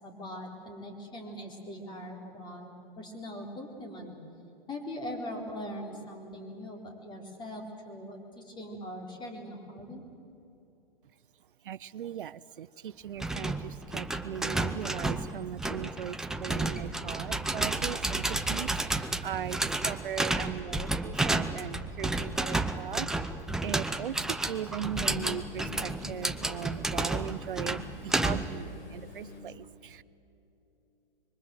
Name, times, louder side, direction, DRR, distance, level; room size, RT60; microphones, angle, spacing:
voice 1, 0.0-2.7 3.0-4.2 4.7-10.0, equal, 15° left, 3 dB, 4.0 m, -41 dB
voice 2, 11.6-23.1 23.6-30.0, right 10 dB, 65° right, 18 dB, 0.6 m, -39 dB
sound 1, 13.2-28.6, right 2 dB, ahead, 0.5 m, -31 dB
sound 2, 22.8-22.9 24.8-29.4, left 4 dB, 50° left, 5.6 m, -46 dB
25.5 x 24.0 x 7.7 m, 2.9 s
hypercardioid pair, 130°, 29 cm